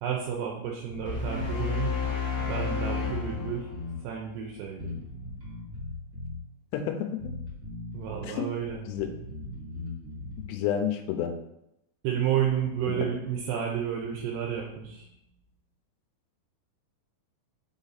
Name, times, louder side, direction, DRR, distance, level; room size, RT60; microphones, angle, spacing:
voice 1, 0.0-1.9 2.5-3.7 4.0-5.0 7.9-8.8 12.0-15.1, right 9 dB, 80° right, -1 dB, 2.7 m, -31 dB
Bass guitar, 0.9-1.5 2.0-2.1 2.4-4.0 4.8-6.4 7.2-8.3 8.6-10.5, left 2 dB, 50° right, 1.2 m, -39 dB
sound 1, 1.1-4.4, left 5 dB, 55° left, 0.8 m, -31 dB
voice 2, 6.7-7.3 8.3-8.4 8.9-9.1 10.4-11.4 12.9-13.1, left 9 dB, 85° left, 5 dB, 2.8 m, -30 dB
6.3 x 4.1 x 4.0 m, 0.83 s
omnidirectional pair, 4.9 m